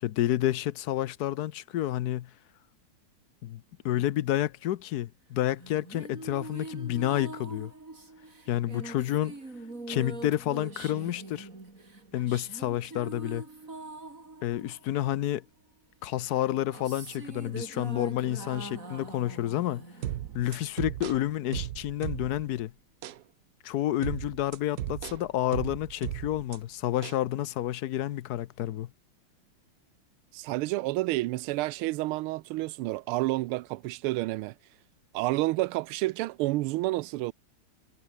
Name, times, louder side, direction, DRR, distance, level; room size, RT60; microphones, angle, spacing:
voice 1, 0.0-2.3 3.4-7.7 8.5-9.3 9.9-11.5 12.1-13.4 14.4-15.4 16.0-19.8 20.3-22.7 23.6-28.9, left 13 dB, 65° left, 1.0 m, -29 dB
sound 1, 5.6-15.5 16.3-21.0, right 2 dB, 40° right, 4.8 m, -43 dB
sound 2, 20.0-22.6 23.0-23.2 24.0-26.6 27.0-27.2, right 12 dB, 65° right, 1.0 m, -36 dB
voice 2, 30.3-34.5 35.1-37.3, right 19 dB, 90° right, 1.5 m, -29 dB
omnidirectional pair, 2.3 m